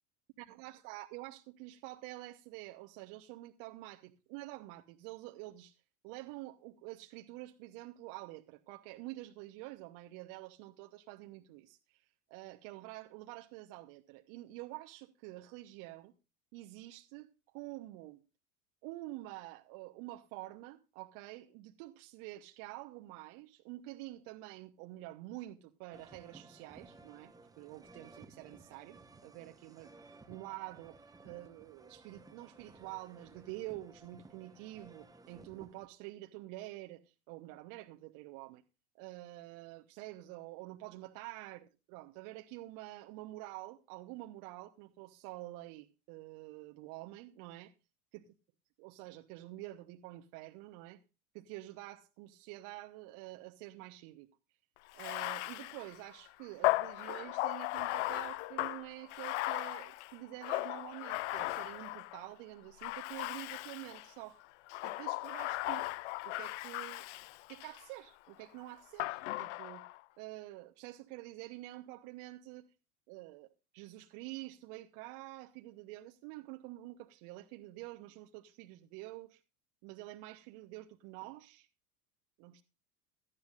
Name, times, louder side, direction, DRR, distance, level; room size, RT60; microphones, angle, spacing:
voice 1, 0.5-16.1 16.5-18.2 18.8-29.9 30.3-31.0 31.2-38.6 39.0-47.7 48.1-48.3 48.8-51.0 51.3-54.3 54.9-64.4 64.8-65.9 66.2-67.0 67.5-69.8 70.2-72.7 73.1-73.5 73.7-79.4 79.8-81.7 82.4-82.5, right 18 dB, 45° right, 1.0 m, -48 dB
sound 1, 25.9-35.9, right 3 dB, 10° right, 1.0 m, -57 dB
Bathtub (filling or washing), 54.9-62.3 62.8-64.1 64.7-67.8 69.0-70.0, left 19 dB, 55° left, 0.5 m, -37 dB
17.5 x 13.0 x 2.5 m
figure-of-eight pair, 85°, 44 cm